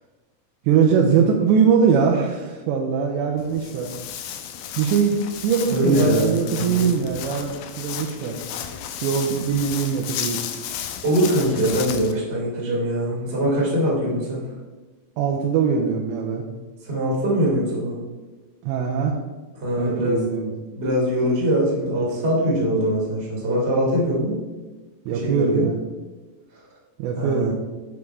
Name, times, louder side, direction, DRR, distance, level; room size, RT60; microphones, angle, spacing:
voice 1, 0.6-3.9 4.8-8.4 9.0-10.4 15.2-16.4 18.6-19.2 19.8-20.5 25.1-25.8 27.0-27.5, right 6 dB, 90° right, 0 dB, 3.0 m, -21 dB
Walk footsteps, 3.4-12.1, left 9 dB, 90° left, 2.2 m, -33 dB
voice 2, 5.7-6.9 11.0-14.4 16.8-18.0 19.6-20.3 20.7-24.4 25.1-25.7 27.2-27.5, equal, 25° right, -5 dB, 1.7 m, -22 dB
8.5 x 5.2 x 4.6 m, 1.2 s
omnidirectional pair, 5.0 m